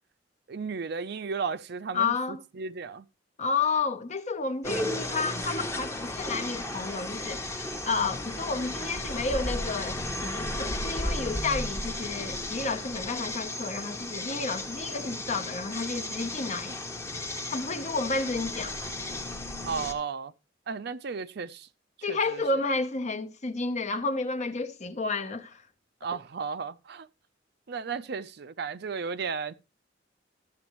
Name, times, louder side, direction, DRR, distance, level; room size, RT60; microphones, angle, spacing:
voice 1, 0.5-2.2 2.6-3.0 19.6-20.3 20.7-21.7 22.1-22.4 26.0-27.1 27.7-29.5, right 5 dB, 60° right, 0.5 m, -34 dB
voice 2, 1.9-2.4 3.4-16.8 17.5-18.8 22.0-25.6, left 4 dB, 40° left, 0.8 m, -31 dB
sound 1, 4.6-19.9, left 1 dB, 15° left, 1.0 m, -34 dB
12.5 x 8.0 x 3.0 m
head